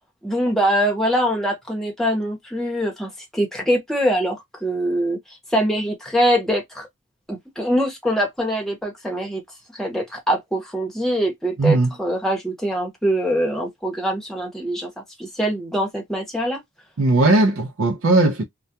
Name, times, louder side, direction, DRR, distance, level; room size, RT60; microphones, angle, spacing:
voice 1, 0.2-6.9 7.3-9.4 9.7-14.9 15.2-16.6, equal, ahead, 0.8 m, -23 dB
voice 2, 11.6-11.9 17.0-18.4, right 2 dB, 70° right, 0.5 m, -17 dB
2.3 x 2.2 x 2.7 m
head